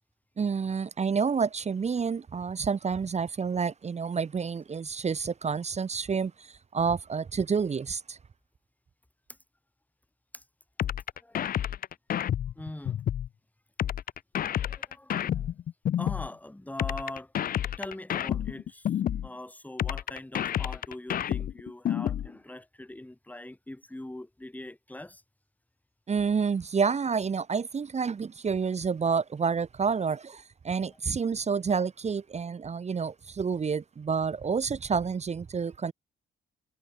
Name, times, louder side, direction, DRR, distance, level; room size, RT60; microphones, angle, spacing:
voice 1, 0.4-8.2 26.1-35.9, right 5 dB, 35° right, 1.1 m, -29 dB
sound 1, 10.8-13.3 13.8-16.3 16.8-19.3 19.8-22.3, left 10 dB, 45° left, 0.5 m, -29 dB
voice 2, 11.2-11.5 12.6-13.0 14.4-15.5 16.0-18.9 19.2-25.2 30.9-31.0, left 1 dB, 10° left, 2.6 m, -42 dB
cardioid pair, 90°, 20 cm